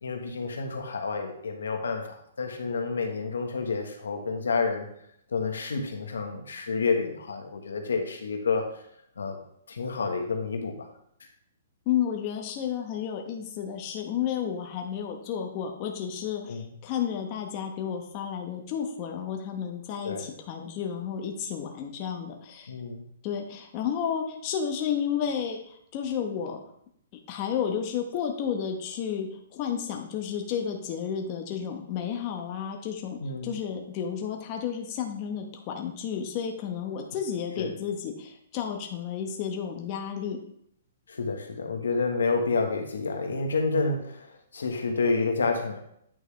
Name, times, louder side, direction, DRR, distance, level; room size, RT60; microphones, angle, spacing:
voice 1, 0.0-4.9 5.3-8.8 9.2-9.4 9.7-10.9 16.5-16.7 20.0-20.3 22.7-23.0 33.2-33.5 37.6-37.7 41.1-45.8, left 4 dB, 85° left, 4 dB, 1.3 m, -29 dB
voice 2, 11.9-22.7 23.2-26.6 27.3-40.4, left 8 dB, 35° left, 2 dB, 1.0 m, -32 dB
9.2 x 4.9 x 3.3 m, 0.70 s
hypercardioid pair, 140°, 0 cm